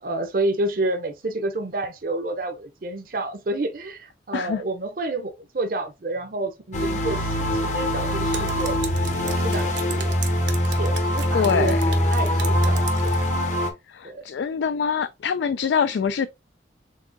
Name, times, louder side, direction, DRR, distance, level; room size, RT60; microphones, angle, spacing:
voice 1, 0.0-8.8 9.2-10.1 10.6-11.8 12.1-13.2 14.0-14.3, right 2 dB, 50° right, 0.6 m, -29 dB
sound 1, 6.7-13.7, equal, 40° left, 0.8 m, -23 dB
Drip, 8.1-13.3, right 8 dB, 80° right, 0.9 m, -38 dB
voice 2, 11.3-11.8 13.9-16.3, left 6 dB, 75° left, 0.3 m, -24 dB
4.6 x 3.7 x 2.6 m
head